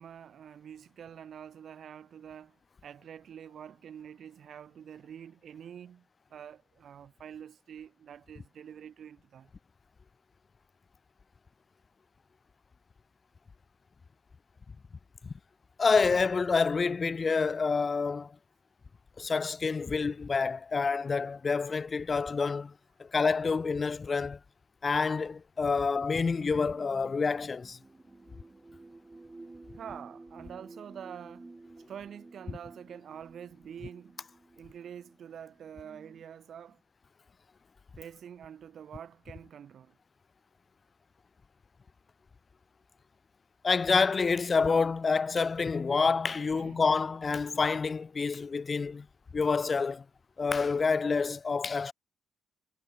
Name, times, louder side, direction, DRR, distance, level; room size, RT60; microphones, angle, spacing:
voice 1, 0.0-6.1 6.3-9.5 29.7-31.5 31.9-34.2 34.5-36.8 38.0-40.0 46.4-46.8, right 8 dB, 60° right, 2.0 m, -46 dB
voice 2, 15.8-18.3 19.2-22.7 23.0-24.4 24.8-27.8 43.6-49.1 49.3-50.0 50.4-51.9, left 4 dB, 35° left, 0.4 m, -28 dB
sound 1, 26.4-36.2, right 2 dB, 20° right, 6.5 m, -53 dB
cardioid pair, 90°, 0 cm